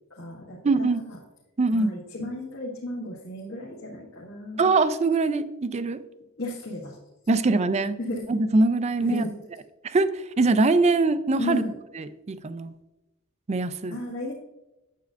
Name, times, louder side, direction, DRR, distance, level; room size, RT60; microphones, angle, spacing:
voice 1, 0.1-1.2 1.7-4.7 6.4-7.0 8.0-8.2 9.0-9.3 11.4-11.7 13.9-14.3, left 2 dB, 65° left, -4 dB, 1.5 m, -34 dB
voice 2, 0.6-1.0 1.6-1.9 4.6-6.0 7.3-8.0 8.3-9.2 9.8-11.6 12.0-12.7 13.5-14.0, right 3 dB, 30° right, 13 dB, 0.4 m, -23 dB
9.1 x 7.5 x 2.5 m, 0.98 s
head